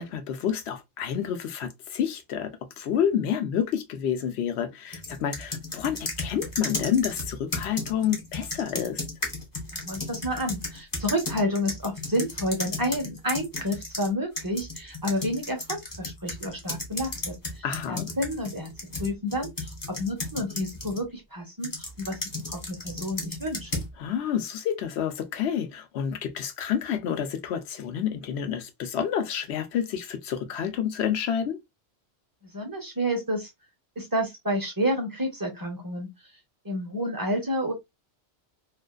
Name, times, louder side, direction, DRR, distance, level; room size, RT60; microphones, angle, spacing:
voice 1, 0.0-9.0 17.6-18.1 24.0-31.6, left 8 dB, 75° left, 0.8 m, -29 dB
sound 1, 4.9-14.1 14.4-21.0 21.6-23.9, left 2 dB, 25° left, 0.5 m, -34 dB
voice 2, 9.7-18.7 19.0-22.2 22.5-23.7 32.5-33.5 34.0-36.1 36.6-37.7, equal, 25° right, 0.5 m, -30 dB
2.4 x 2.3 x 2.2 m
omnidirectional pair, 1.2 m